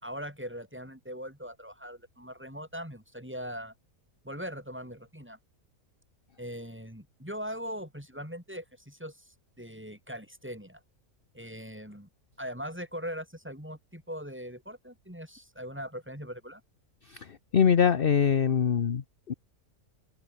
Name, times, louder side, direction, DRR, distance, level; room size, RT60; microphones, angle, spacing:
voice 1, 0.0-3.7 4.2-5.4 6.4-10.8 11.3-12.1 12.4-16.6, equal, 5° right, 6.0 m, -40 dB
voice 2, 17.5-19.0 19.3-19.4, left 7 dB, 45° left, 1.0 m, -22 dB
omnidirectional pair, 1.6 m